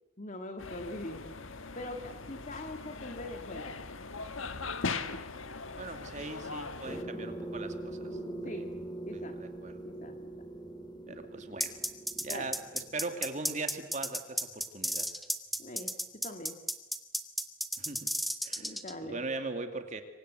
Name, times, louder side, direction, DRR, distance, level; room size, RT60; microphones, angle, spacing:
voice 1, 0.2-1.3 1.7-3.7 7.0-7.3 8.1-8.7 9.1-9.4 9.8-10.3 11.1-11.2 12.3-12.5 15.6-16.6 18.6-19.2, left 1 dB, 35° left, 6 dB, 1.9 m, -43 dB
sound 1, 0.6-7.0, left 4 dB, 75° left, 1.5 m, -40 dB
voice 2, 5.8-8.1 8.5-8.6 9.1-9.8 11.1-11.8 12.2-15.1 17.8-18.1 18.4-20.0, right 3 dB, 35° right, 7 dB, 2.4 m, -40 dB
sound 2, 6.8-14.0, right 1 dB, 20° left, 2.5 m, -42 dB
sound 3, 11.6-18.9, equal, ahead, 1.3 m, -33 dB
27.5 x 24.0 x 8.2 m, 1.0 s
head